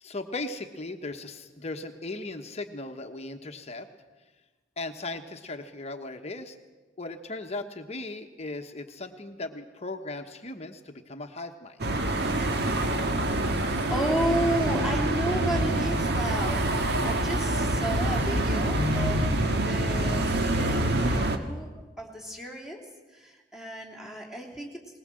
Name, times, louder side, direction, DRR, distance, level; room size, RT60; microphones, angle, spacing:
voice 1, 0.0-3.9 4.8-6.6 7.0-11.8, left 2 dB, 35° left, 5 dB, 1.2 m, -37 dB
sound 1, 11.8-21.4, right 1 dB, 60° right, 1.6 m, -26 dB
voice 2, 13.9-20.3 20.5-22.8 23.1-24.8, right 1 dB, 5° right, -1 dB, 3.2 m, -33 dB
20.0 x 20.0 x 7.6 m, 1.3 s
head